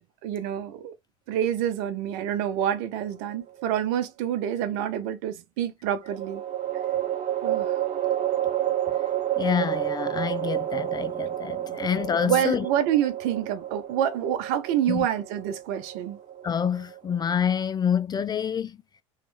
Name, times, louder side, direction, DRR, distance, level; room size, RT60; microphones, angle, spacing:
voice 1, 0.2-0.9 1.3-6.4 7.4-7.8 11.7-11.8 12.3-16.2, right 10 dB, 65° right, 0.8 m, -27 dB
sound 1, 3.0-3.8 6.0-17.4, right 12 dB, 50° right, 1.1 m, -30 dB
voice 2, 9.4-12.7 14.9-15.1 16.4-18.8, left 7 dB, 25° left, 0.4 m, -27 dB
3.2 x 3.0 x 3.3 m
hypercardioid pair, 75°, 16 cm